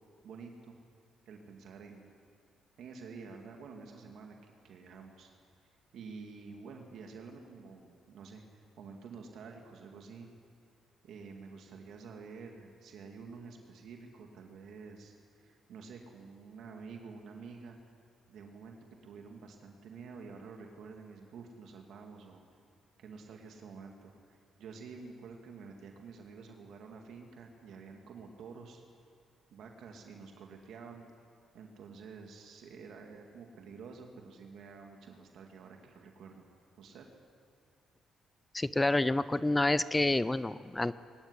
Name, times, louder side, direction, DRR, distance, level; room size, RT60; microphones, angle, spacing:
voice 1, 0.2-0.8 1.3-2.1 2.8-5.3 5.9-10.3 11.0-17.8 18.3-18.8 19.0-22.4 23.0-28.8 29.5-31.1 31.5-36.4 36.8-37.1, right 5 dB, 75° right, 2 dB, 2.3 m, -49 dB
voice 2, 38.5-41.0, left 2 dB, 15° left, 16 dB, 0.6 m, -28 dB
21.5 x 17.5 x 10.0 m, 2.3 s
cardioid pair, 90°, 0 cm